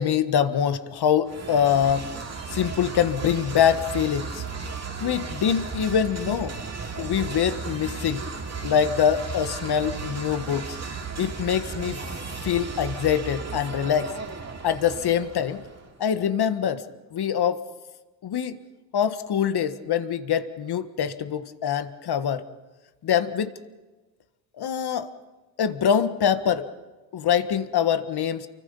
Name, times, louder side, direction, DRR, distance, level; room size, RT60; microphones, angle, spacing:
voice 1, 0.0-2.1 2.5-4.4 5.0-6.5 7.0-8.2 8.6-10.8 11.2-12.0 12.4-14.1 14.6-15.6 16.0-16.8 17.1-17.6 18.2-18.6 18.9-22.4 23.0-23.5 24.6-25.1 25.6-26.6 27.1-28.5, left 8 dB, 60° left, 11 dB, 1.6 m, -24 dB
sound 1, 1.2-15.9, right 4 dB, 35° right, 2.9 m, -35 dB
29.0 x 24.0 x 5.5 m, 1.2 s
supercardioid pair, 75°, 45 cm